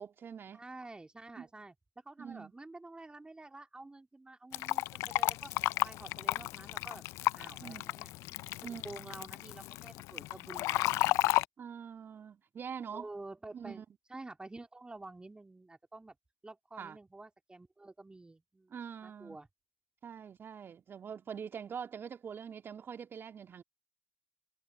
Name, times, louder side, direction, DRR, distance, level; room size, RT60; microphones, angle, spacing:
voice 1, 0.0-0.6 1.4-1.5 2.2-2.5 7.6-7.9 8.6-9.0 11.6-13.1 13.5-13.8 16.8-17.0 18.7-19.4 20.0-23.6, right 7 dB, 45° right, 2.1 m, -44 dB
voice 2, 0.5-1.7 2.0-5.5 5.8-7.0 7.4-8.1 8.8-11.4 12.9-13.8 14.1-16.1 16.4-18.7 19.0-19.5, right 2 dB, 20° right, 2.5 m, -49 dB
Fill (with liquid), 4.5-11.4, left 18 dB, 70° left, 0.6 m, -33 dB
hypercardioid pair, 50°, 5 cm